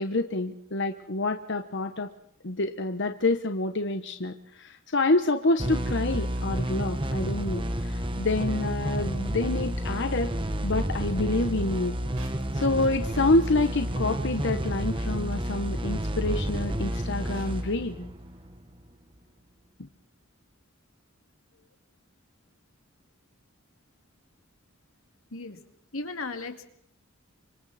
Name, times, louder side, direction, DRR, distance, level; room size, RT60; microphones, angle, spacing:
voice 1, 0.0-2.1 2.4-10.3 10.6-12.0 12.5-18.1, left 2 dB, 60° left, 7 dB, 1.1 m, -27 dB
sound 1, 5.4-5.5 5.8-6.6 7.0-7.2 7.7-7.8 8.1-8.4 8.8-9.1 9.5-11.2 11.5-13.0 13.4-15.6 15.9-16.1 16.3-18.5, equal, 70° right, 5.0 m, -48 dB
sound 2, 5.6-18.9, right 1 dB, 25° right, 1.3 m, -30 dB
voice 2, 25.9-26.7, left 3 dB, 90° left, 6 dB, 2.6 m, -35 dB
29.0 x 25.5 x 4.2 m, 0.68 s
head